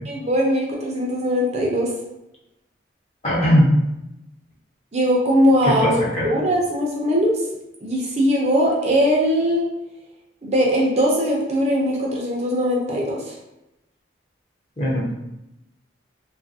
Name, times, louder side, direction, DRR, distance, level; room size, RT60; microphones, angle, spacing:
voice 1, 0.1-1.9 4.9-7.3 7.8-9.7 10.4-13.2, equal, 35° right, -3 dB, 0.5 m, -20 dB
voice 2, 3.2-3.8 5.6-6.3 14.8-15.1, equal, 35° left, -6 dB, 0.9 m, -19 dB
3.1 x 2.4 x 2.6 m, 0.90 s
head